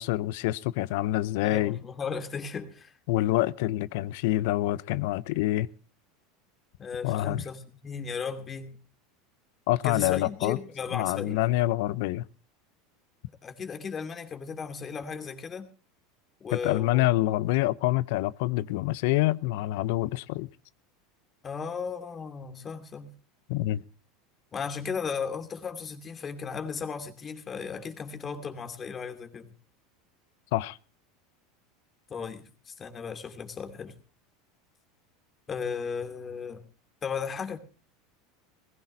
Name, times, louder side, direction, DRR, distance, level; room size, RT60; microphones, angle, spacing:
voice 1, 0.0-1.8 3.1-5.7 7.0-7.4 9.7-10.6 10.9-12.2 16.6-20.5 23.5-23.8 30.5-30.8, left 16 dB, 70° left, 0.6 m, -26 dB
voice 2, 1.4-2.9 6.8-8.8 9.8-11.4 13.4-15.7 16.4-17.0 21.4-23.1 24.5-29.5 32.1-34.0 35.5-36.6 37.0-37.6, left 6 dB, 30° left, 2.7 m, -35 dB
21.0 x 15.5 x 2.7 m
hypercardioid pair, 95°, 0 cm